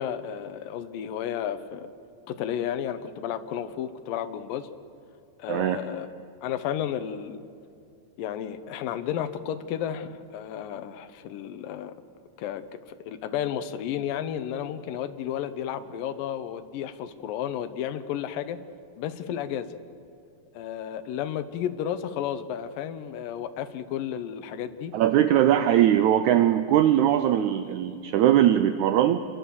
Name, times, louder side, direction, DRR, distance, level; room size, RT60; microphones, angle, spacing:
voice 1, 0.0-1.9 2.3-4.7 5.4-6.1 6.4-7.4 8.2-11.9 12.4-18.6 19.0-19.7 20.5-24.9, left 9 dB, 75° left, 9 dB, 2.5 m, -32 dB
voice 2, 5.5-5.8 24.9-29.3, right 11 dB, 75° right, 9 dB, 1.8 m, -21 dB
28.0 x 22.0 x 7.0 m, 2.3 s
omnidirectional pair, 4.1 m